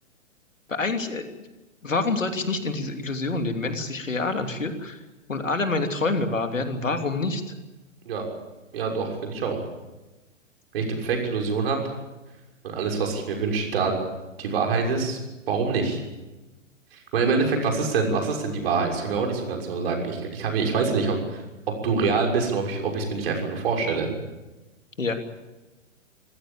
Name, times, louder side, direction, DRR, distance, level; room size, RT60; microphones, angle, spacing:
voice 1, 0.7-1.2 1.8-5.0 5.3-7.5 25.0-25.1, left 3 dB, 80° left, 5 dB, 3.1 m, -27 dB
voice 2, 8.7-9.6 10.7-11.8 12.6-13.9 14.4-15.2 15.5-16.0 16.9-21.4 21.8-24.1, right 4 dB, 50° right, 1 dB, 6.4 m, -25 dB
26.5 x 16.0 x 8.6 m, 1.1 s
figure-of-eight pair, 120°, 38 cm